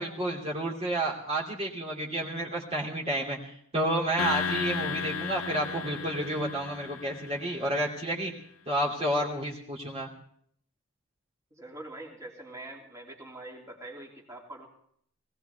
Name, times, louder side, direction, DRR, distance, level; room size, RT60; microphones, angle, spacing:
voice 1, 0.0-8.3 8.7-10.1, right 1 dB, 30° right, -4 dB, 2.8 m, -30 dB
sound 1, 4.2-7.7, left 6 dB, 70° left, 0.6 m, -34 dB
voice 2, 11.5-14.7, right 2 dB, 15° right, -1 dB, 2.8 m, -44 dB
20.5 x 17.0 x 3.5 m, 0.64 s
head